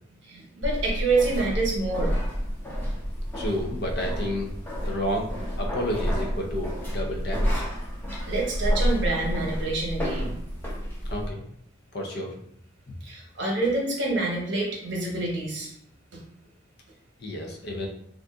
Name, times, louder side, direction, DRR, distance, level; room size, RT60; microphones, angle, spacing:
voice 1, 0.3-2.2 8.3-10.4 13.0-15.7, right 3 dB, 60° right, -2 dB, 0.9 m, -27 dB
sound 1, 0.6-11.3, equal, 10° left, 0.6 m, -29 dB
voice 2, 3.3-4.5 4.8-5.3 5.6-7.6 11.1-11.4 11.9-12.3 17.2-17.9, equal, 50° left, 1 dB, 0.5 m, -30 dB
2.6 x 2.4 x 3.4 m, 0.69 s
head